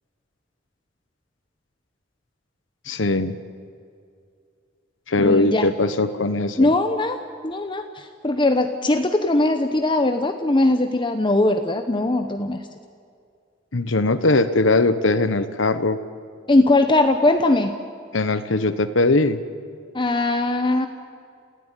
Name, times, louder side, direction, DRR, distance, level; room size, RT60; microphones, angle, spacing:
voice 1, 2.9-3.3 5.1-6.7 13.7-16.0 18.1-19.4, left 2 dB, 85° left, 11 dB, 1.1 m, -20 dB
voice 2, 5.2-5.7 6.6-7.2 7.4-12.6 16.5-17.7 19.9-20.9, left 2 dB, 25° left, 7 dB, 1.0 m, -20 dB
28.5 x 16.5 x 9.1 m, 2.3 s
head